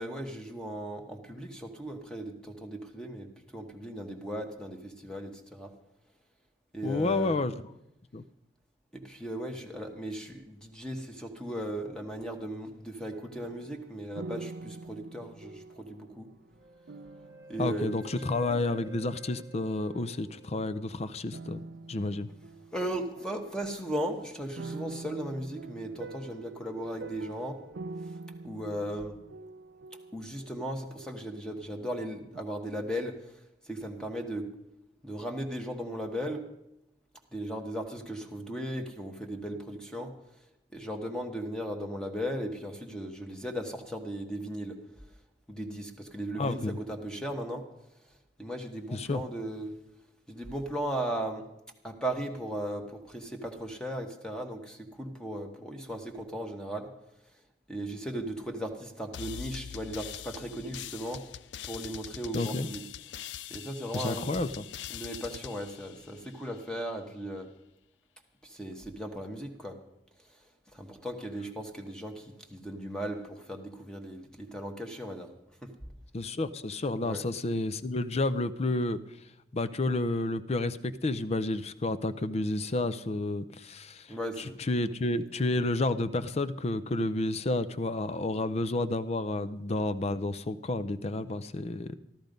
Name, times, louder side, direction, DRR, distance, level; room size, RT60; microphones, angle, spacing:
voice 1, 0.0-5.7 6.7-7.4 8.9-16.3 17.5-17.9 22.7-27.6 28.4-29.2 30.1-34.5 35.0-36.4 37.3-40.1 40.7-44.8 45.5-47.6 48.4-49.7 50.3-51.4 51.8-56.9 57.7-61.2 61.6-62.8 63.5-64.3 64.9-67.5 68.4-69.8 70.7-75.3 75.6-75.7 77.0-77.2 84.1-84.6, right 1 dB, 5° left, 4 dB, 1.2 m, -37 dB
voice 2, 6.8-7.7 8.1-8.2 17.6-22.3 46.4-46.8 48.9-49.2 62.3-62.7 63.9-64.6 76.1-79.0 79.5-84.1 84.7-92.0, left 2 dB, 35° left, 14 dB, 0.6 m, -30 dB
sound 1, 13.1-19.6 19.9-20.7 21.3-32.0 32.3-32.4, right 3 dB, 70° right, 0.5 m, -46 dB
Wind instrument woodwind instrument, 16.6-20.8, right 1 dB, 20° right, 0.9 m, -51 dB
sound 2, 59.1-66.6, left 11 dB, 80° left, 0.4 m, -43 dB
13.5 x 13.5 x 5.2 m, 0.84 s
head